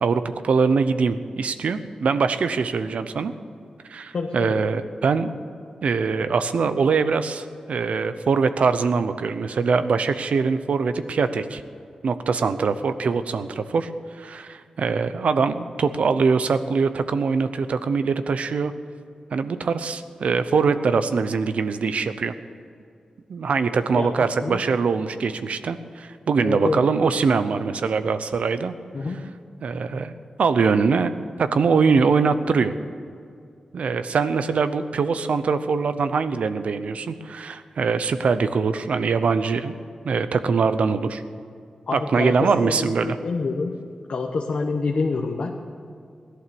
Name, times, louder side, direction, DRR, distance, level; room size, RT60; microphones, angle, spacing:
voice 1, 0.0-3.3 3.9-5.3 5.8-11.6 12.0-13.9 14.2-18.7 19.3-22.3 23.3-28.7 29.6-31.1 31.4-32.7 33.7-39.7 40.0-41.2 41.9-43.2, right 5 dB, 80° right, 11 dB, 0.7 m, -23 dB
voice 2, 4.1-4.6 23.9-24.1 24.4-24.6 26.4-26.8 28.9-29.2 41.9-43.7 44.1-45.6, left 4 dB, 60° left, 1 dB, 1.0 m, -27 dB
17.0 x 11.5 x 7.0 m, 2.3 s
wide cardioid pair, 155°, 2 cm